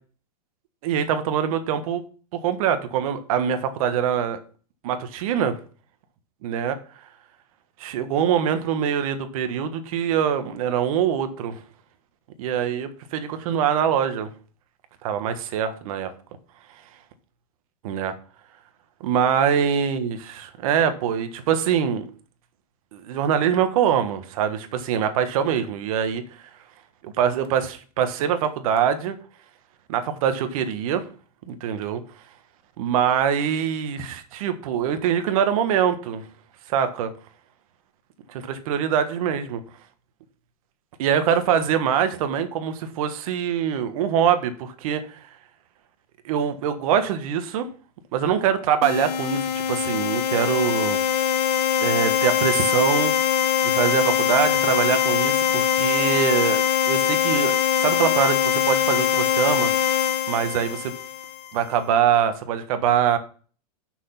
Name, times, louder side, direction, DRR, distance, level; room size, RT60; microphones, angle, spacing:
voice 1, 0.8-2.0 2.3-4.4 4.8-5.5 6.4-6.8 7.8-11.6 12.4-14.3 15.0-16.1 17.8-18.1 19.0-22.0 22.9-26.4 27.0-29.2 29.9-31.0 31.5-32.0 32.8-36.2 36.7-37.1 38.3-39.6 41.0-45.2 46.2-47.7 48.1-51.0 51.8-53.1 53.6-56.6 56.9-59.7 60.3-60.9 61.5-63.2, right 8 dB, 60° right, 9 dB, 1.4 m, -23 dB
sound 1, 48.8-61.5, left 9 dB, 80° left, 0.7 m, -22 dB
6.4 x 6.2 x 5.9 m, 0.40 s
hypercardioid pair, 135°, 20 cm